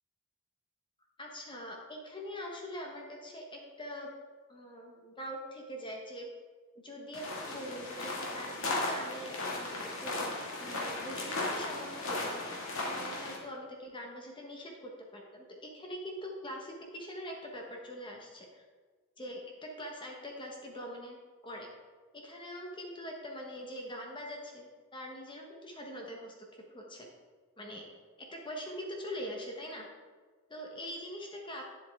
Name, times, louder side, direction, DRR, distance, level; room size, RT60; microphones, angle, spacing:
voice 1, 1.2-4.1 4.5-6.3 6.7-10.3 10.5-12.4 12.8-18.6 19.2-21.7 22.1-27.1 27.6-27.9 28.2-29.9 30.5-31.6, equal, 20° left, 0 dB, 1.1 m, -43 dB
sound 1, 7.1-13.4, left 2 dB, 65° left, 1.8 m, -36 dB
9.7 x 7.7 x 3.6 m, 1.4 s
head